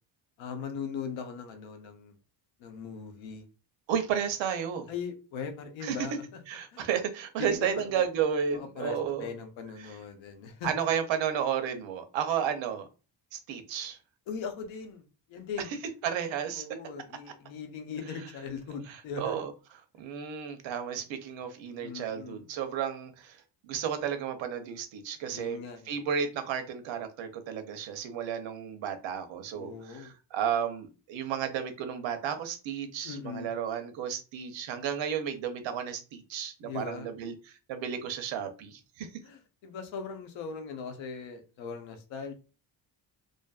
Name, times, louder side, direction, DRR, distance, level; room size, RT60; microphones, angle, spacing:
voice 1, 0.4-2.2 2.6-3.4 4.9-6.4 6.7-6.8 7.4-8.0 8.5-10.7 14.3-15.0 15.3-15.7 16.5-19.4 21.8-22.4 25.3-26.0 29.6-30.1 33.0-33.5 36.6-37.1 39.2-42.3, left 6 dB, 90° left, 0.8 m, -39 dB
voice 2, 3.9-4.9 5.8-6.0 6.5-9.3 9.8-9.9 10.6-12.9 13.3-14.0 16.0-16.6 18.9-19.5 20.0-25.6 25.9-39.1, right 8 dB, 80° right, 0.7 m, -32 dB
2.6 x 2.4 x 2.3 m
cardioid pair, 125°, 45 cm